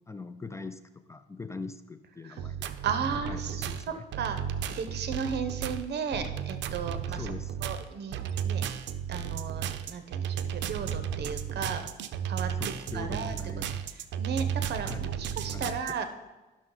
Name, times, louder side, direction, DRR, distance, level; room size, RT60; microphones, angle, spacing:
voice 1, 0.1-2.7 3.3-4.1 7.1-7.5 12.6-13.8 14.8-15.1 15.4-15.7, left 3 dB, 15° left, 10 dB, 0.4 m, -41 dB
sound 1, 2.4-15.9, right 9 dB, 80° right, 0.5 m, -34 dB
voice 2, 2.8-4.4 4.7-7.3 7.6-8.7 9.1-11.9 12.3-13.4 13.9-16.1, right 6 dB, 65° right, 9 dB, 1.0 m, -35 dB
11.0 x 6.3 x 3.9 m, 1.2 s
cardioid pair, 100°, 19 cm